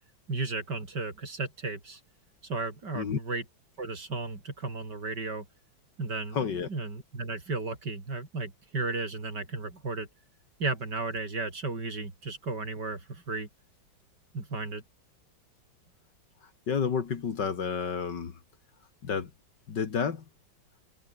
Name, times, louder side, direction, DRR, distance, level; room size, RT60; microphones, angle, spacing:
voice 1, 0.3-2.0 2.4-3.4 3.8-5.4 6.0-10.1 10.6-13.5 14.3-14.8, right 3 dB, 55° right, 5.0 m, -34 dB
voice 2, 6.3-6.7 16.7-18.4 19.0-19.3 19.7-20.2, left 6 dB, 60° left, 2.4 m, -30 dB
omnidirectional pair, 2.2 m